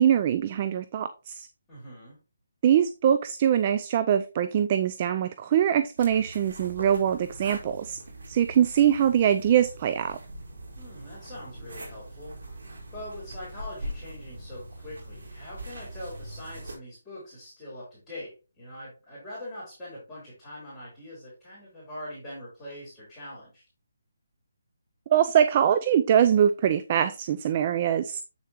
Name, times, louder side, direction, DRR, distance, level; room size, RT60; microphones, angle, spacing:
voice 1, 0.0-1.5 2.6-8.0 8.3-10.2 25.1-28.2, right 9 dB, 35° right, 11 dB, 0.5 m, -23 dB
voice 2, 1.7-2.2 10.8-23.6, left 1 dB, 10° left, -8 dB, 4.0 m, -43 dB
sound 1, 6.0-16.7, right 1 dB, 70° right, 4.0 m, -42 dB
8.1 x 6.6 x 3.0 m, 0.30 s
hypercardioid pair, 160°, 0 cm